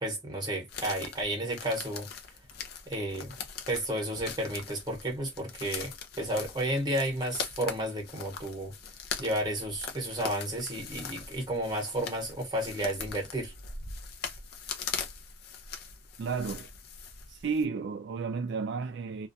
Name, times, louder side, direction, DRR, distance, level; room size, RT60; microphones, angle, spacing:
voice 1, 0.0-2.1 2.9-3.3 3.7-8.7 9.2-13.5, right 1 dB, 20° right, 1.0 m, -32 dB
breaking branches, 0.7-17.6, left 6 dB, 55° left, 0.5 m, -41 dB
voice 2, 16.2-16.7 17.3-19.3, right 5 dB, 60° right, 0.3 m, -32 dB
2.4 x 2.2 x 2.5 m
head